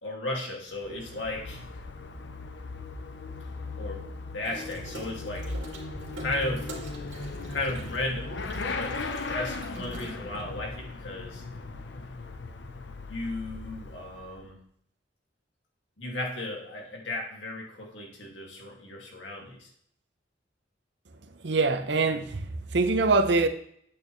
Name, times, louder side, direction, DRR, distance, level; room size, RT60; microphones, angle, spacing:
voice 1, 0.0-1.6 3.8-5.6 6.2-6.7 7.5-8.4 8.8-9.0 9.3-11.4 13.1-14.6 16.0-19.7, left 2 dB, 85° left, 2.3 m, -35 dB
Motorcycle / Accelerating revving vroom, 0.7-14.6, left 3 dB, 70° left, 0.8 m, -38 dB
Water tap faucet / Sink (filling or washing), 4.4-10.5, right 1 dB, 85° right, 2.3 m, -45 dB
voice 2, 21.4-22.4 22.7-23.5, right 3 dB, 65° right, 0.8 m, -23 dB
9.0 x 8.7 x 3.2 m
head